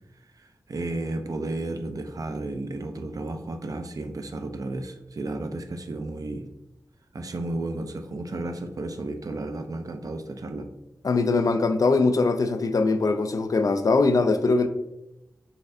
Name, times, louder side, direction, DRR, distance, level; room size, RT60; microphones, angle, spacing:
voice 1, 0.4-6.5 7.1-10.7, right 2 dB, 60° right, 0.4 m, -33 dB
voice 2, 11.0-14.7, left 3 dB, 55° left, 0.3 m, -22 dB
4.0 x 2.4 x 2.6 m
cardioid pair, 40°, 7 cm